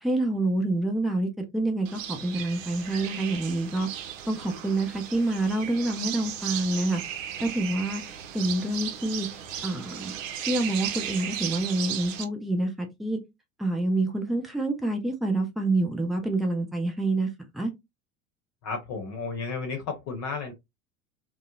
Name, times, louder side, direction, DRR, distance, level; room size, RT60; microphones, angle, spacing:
voice 1, 0.0-3.9 4.3-7.0 7.4-9.3 9.6-10.1 10.5-13.2 13.6-17.3 17.5-17.7, right 2 dB, ahead, 0.3 m, -27 dB
sound 1, 1.8-12.3, right 9 dB, 70° right, 0.6 m, -36 dB
voice 2, 18.6-20.5, left 4 dB, 45° left, 0.9 m, -33 dB
2.6 x 2.0 x 2.2 m
figure-of-eight pair, 80°, 40 cm